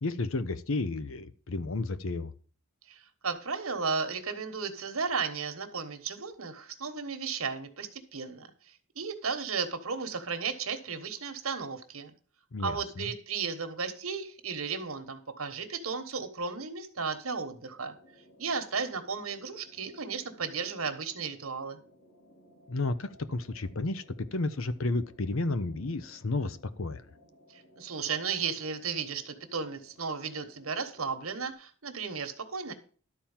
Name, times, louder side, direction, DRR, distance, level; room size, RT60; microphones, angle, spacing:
voice 1, 0.0-2.3 12.5-13.1 22.7-24.0 24.3-27.0, left 2 dB, 65° left, 13 dB, 0.8 m, -32 dB
voice 2, 2.9-8.5 8.9-12.1 12.6-17.9 18.4-21.8 27.5-32.7, right 5 dB, 80° right, 8 dB, 1.4 m, -34 dB
sound 1, 17.6-31.5, equal, 85° left, 3.9 m, -60 dB
12.0 x 4.4 x 7.2 m, 0.41 s
head